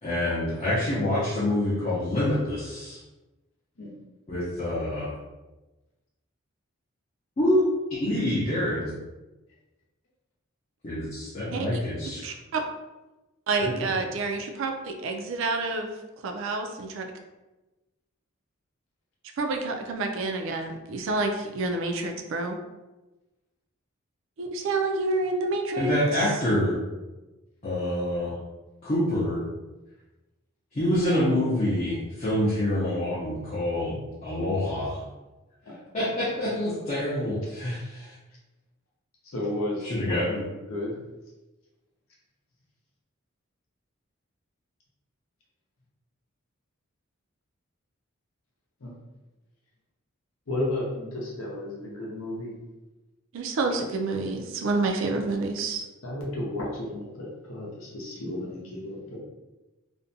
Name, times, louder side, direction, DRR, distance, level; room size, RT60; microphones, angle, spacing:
voice 1, 0.0-3.0 4.3-5.1 7.4-7.6 7.9-8.9 10.8-12.3 13.6-13.9 25.8-26.8 27.6-28.3 28.8-29.5 30.7-35.0 35.9-38.1 39.8-40.4, left 1 dB, 30° left, -9 dB, 0.5 m, -26 dB
voice 2, 12.2-12.6 13.5-16.0 16.2-17.1 19.4-22.6 24.4-25.9 53.3-55.8, right 3 dB, 65° right, 4 dB, 0.3 m, -28 dB
voice 3, 39.2-40.2 40.7-41.0 48.8-48.9 50.5-52.5 56.0-59.2, left 1 dB, 80° left, -3 dB, 0.7 m, -33 dB
2.5 x 2.1 x 2.6 m, 1.1 s
head